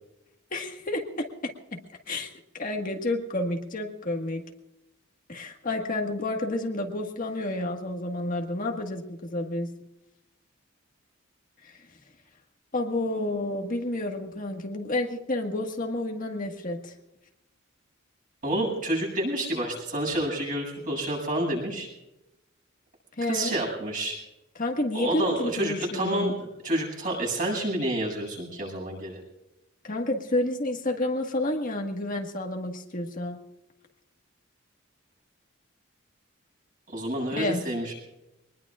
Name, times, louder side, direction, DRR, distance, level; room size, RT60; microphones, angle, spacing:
voice 1, 0.5-1.2 1.7-1.8 2.1-4.4 5.3-9.7 11.6-11.9 12.7-16.9 23.2-23.5 24.5-26.3 29.8-33.4 37.4-37.6, left 1 dB, 40° left, 2 dB, 1.7 m, -30 dB
voice 2, 18.4-21.9 23.3-24.2 24.9-26.3 26.6-29.2 36.9-37.9, right 1 dB, 40° right, -1 dB, 7.8 m, -29 dB
24.5 x 20.5 x 2.5 m, 0.94 s
head